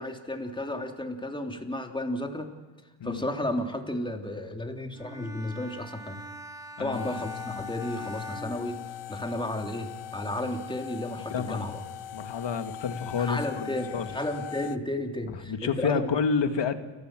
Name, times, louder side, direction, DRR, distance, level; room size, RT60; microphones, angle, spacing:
voice 1, 0.0-2.5 3.0-6.2 6.8-8.8 9.1-11.8 13.2-16.1, left 1 dB, 10° left, 3 dB, 3.3 m, -33 dB
Bowed string instrument, 4.9-9.4, right 2 dB, 5° right, 1.9 m, -44 dB
voice 2, 6.8-7.2 11.3-11.6 12.1-14.1 15.5-16.8, left 6 dB, 55° left, 8 dB, 2.1 m, -29 dB
sound 1, 6.9-14.8, left 11 dB, 75° left, 1.0 m, -40 dB
29.5 x 14.5 x 7.7 m, 1.3 s
cardioid pair, 75°, 50 cm